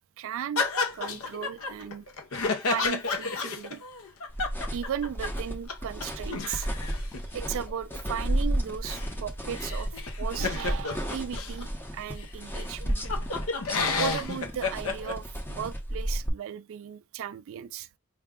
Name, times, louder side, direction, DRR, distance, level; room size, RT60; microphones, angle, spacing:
voice 1, 0.2-0.6 0.9-2.0 2.7-3.8 4.7-6.9 7.3-11.7 11.9-13.0 13.9-17.9, right 9 dB, 60° right, 0.3 m, -36 dB
sound 1, 0.6-5.4 5.7-5.8 6.0-11.6 12.2-12.3 12.6-15.2, left 4 dB, 65° left, 0.7 m, -31 dB
sound 2, 4.3-16.3, right 1 dB, 10° left, 0.7 m, -33 dB
4.8 x 2.2 x 3.5 m
head